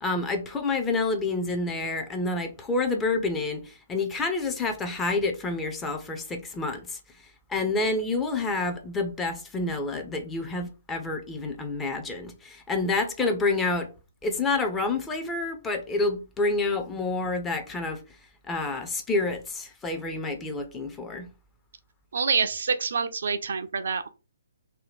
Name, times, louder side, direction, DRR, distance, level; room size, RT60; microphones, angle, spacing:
voice 1, 0.0-7.0 7.5-13.9 14.2-18.0 18.5-21.3, left 3 dB, 10° left, 0.5 m, -28 dB
voice 2, 22.1-24.1, right 5 dB, 60° right, 0.4 m, -26 dB
2.7 x 2.2 x 3.3 m
figure-of-eight pair, 135°, 0 cm